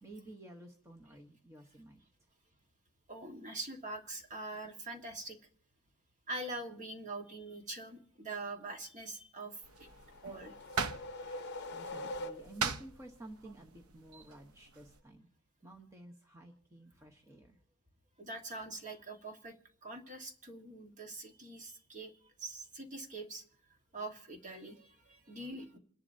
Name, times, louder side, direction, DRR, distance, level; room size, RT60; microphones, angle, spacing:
voice 1, 0.0-2.0 11.7-15.3 15.6-17.6, right 1 dB, 15° right, 0 dB, 1.0 m, -52 dB
voice 2, 3.1-5.4 6.3-9.9 10.2-10.5 18.2-23.4 23.9-25.8, right 2 dB, 35° right, 3 dB, 1.5 m, -44 dB
sound 1, 9.6-15.0, right 5 dB, 80° right, 0.7 m, -41 dB
sound 2, 9.7-12.8, left 1 dB, 50° left, 0.7 m, -44 dB
28.0 x 10.5 x 2.7 m, 0.62 s
head